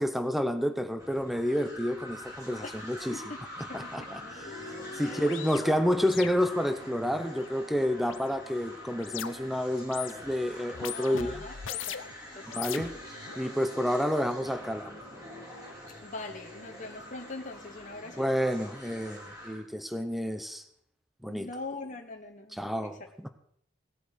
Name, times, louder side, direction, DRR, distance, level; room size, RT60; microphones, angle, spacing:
voice 1, 0.0-3.2 3.7-4.2 5.0-11.4 12.5-12.9 13.4-14.9 18.2-20.6 21.2-21.5 22.6-23.0, equal, ahead, 9 dB, 0.8 m, -29 dB
sound 1, 1.0-19.6, left 1 dB, 20° right, 4.4 m, -45 dB
voice 2, 3.1-3.4 3.7-4.1 5.0-5.8 10.9-12.7 16.0-18.4 21.3-23.0, left 2 dB, 40° left, 2 dB, 1.3 m, -43 dB
sound 2, 3.5-3.6 3.9-9.6 9.8-10.4 10.7-12.2 12.5-13.4, left 8 dB, 85° left, 0.7 m, -42 dB
17.5 x 8.1 x 6.5 m, 0.65 s
head